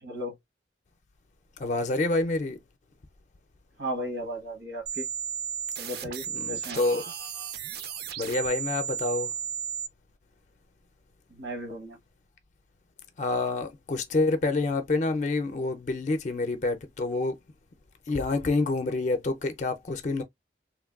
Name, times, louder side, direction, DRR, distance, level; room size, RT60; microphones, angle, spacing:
voice 1, 0.0-0.3 3.8-5.1 5.8-6.8 11.3-12.0, equal, 85° right, 1.2 m, -35 dB
voice 2, 1.6-2.6 6.3-7.1 8.2-9.3 13.2-17.4 18.1-20.2, left 2 dB, 45° left, 0.4 m, -27 dB
sound 1, 4.9-9.9, right 8 dB, 60° right, 0.4 m, -34 dB
3.2 x 2.2 x 2.3 m
head